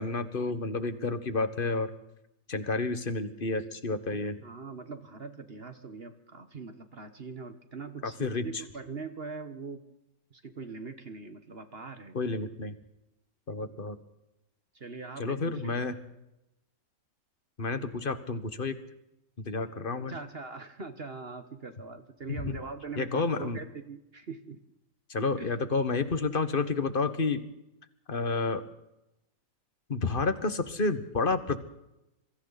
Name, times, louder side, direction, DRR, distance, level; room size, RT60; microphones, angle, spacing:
voice 1, 0.0-1.9 2.5-4.4 8.0-8.6 12.1-12.8 13.5-14.0 15.2-16.0 17.6-18.8 19.4-20.1 22.4-22.6 23.0-23.6 25.1-27.4 28.1-28.6 29.9-31.6, left 3 dB, 35° left, 10 dB, 1.7 m, -30 dB
voice 2, 4.1-9.8 10.3-12.2 13.6-13.7 14.7-15.8 20.0-24.6 25.4-25.5, right 4 dB, 45° right, 9 dB, 1.5 m, -42 dB
27.0 x 24.0 x 4.2 m, 0.89 s
omnidirectional pair, 1.5 m